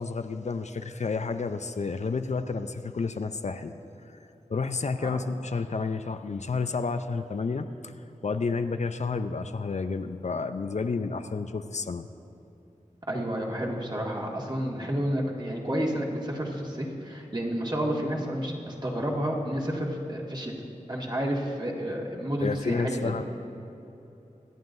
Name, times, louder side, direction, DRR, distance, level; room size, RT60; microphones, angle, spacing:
voice 1, 0.0-3.7 4.1-7.9 8.2-12.1 22.4-23.2, left 4 dB, 60° left, 9 dB, 0.5 m, -30 dB
voice 2, 13.1-20.5 20.9-23.1, equal, 35° right, -2 dB, 2.0 m, -30 dB
24.0 x 9.2 x 2.6 m, 3.0 s
cardioid pair, 45°, 13 cm